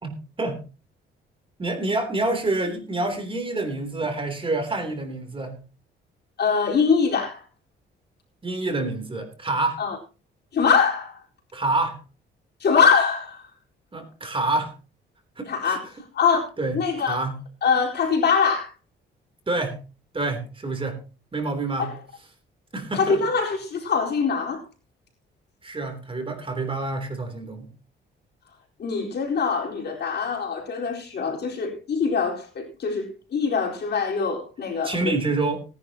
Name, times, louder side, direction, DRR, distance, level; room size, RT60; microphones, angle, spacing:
voice 1, 0.0-0.6 1.6-5.6 8.4-9.8 11.5-12.0 13.9-14.7 15.4-15.8 16.6-17.4 19.5-19.8 20.1-21.0 21.3-21.9 22.7-23.2 25.6-27.7 34.8-35.6, right 2 dB, 25° right, 3.4 m, -27 dB
voice 2, 6.4-7.4 9.8-10.0 10.5-11.2 12.6-13.5 15.5-16.5 16.7-17.2 17.6-18.7 21.8-22.0 22.9-24.6 28.8-35.2, left 5 dB, 55° left, 4.3 m, -23 dB
18.5 x 10.5 x 3.0 m
cardioid pair, 90°, 20 cm